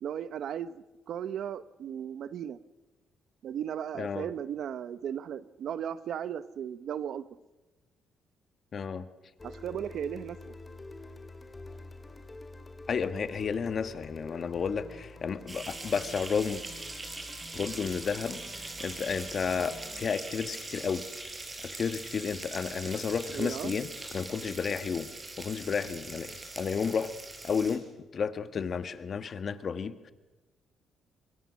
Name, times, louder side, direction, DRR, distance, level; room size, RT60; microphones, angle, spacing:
voice 1, 0.0-2.6 3.4-7.3 9.4-10.4 23.3-23.7, right 9 dB, 70° right, 15 dB, 0.8 m, -36 dB
voice 2, 4.0-4.3 8.7-9.1 12.9-16.6 17.5-21.1 21.6-25.1 25.4-27.1 27.4-27.9 28.1-30.1, left 6 dB, 50° left, 11 dB, 1.3 m, -32 dB
sound 1, 9.4-20.1, left 2 dB, 20° left, 2.4 m, -47 dB
sound 2, 15.5-27.8, right 2 dB, 25° right, 4.8 m, -42 dB
25.0 x 22.5 x 6.3 m, 1.1 s
cardioid pair, 90°, 0 cm